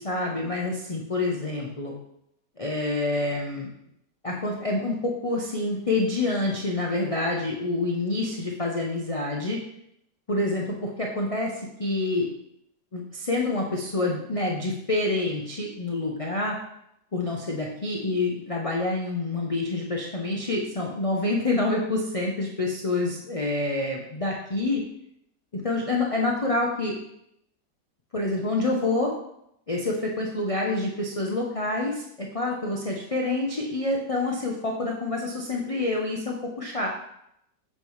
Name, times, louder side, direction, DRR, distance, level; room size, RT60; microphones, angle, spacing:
voice 1, 0.0-1.9 2.6-3.7 4.2-9.6 10.3-12.3 12.9-16.6 17.1-24.8 25.5-26.9 28.1-29.1 29.7-36.9, left 2 dB, 60° left, -2 dB, 0.3 m, -27 dB
7.5 x 5.4 x 3.1 m, 0.78 s
omnidirectional pair, 1.9 m